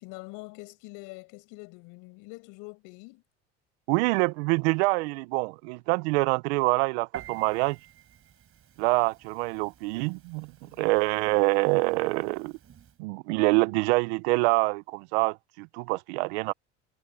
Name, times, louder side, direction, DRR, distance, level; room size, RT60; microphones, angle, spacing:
voice 1, 0.0-3.2 10.6-10.8, left 27 dB, 70° left, 6.6 m, -45 dB
voice 2, 3.9-7.8 8.8-12.5 13.0-16.5, right 26 dB, 75° right, 1.0 m, -26 dB
Piano, 7.1-13.0, right 10 dB, 40° right, 4.1 m, -49 dB
hypercardioid pair, 80°, 33 cm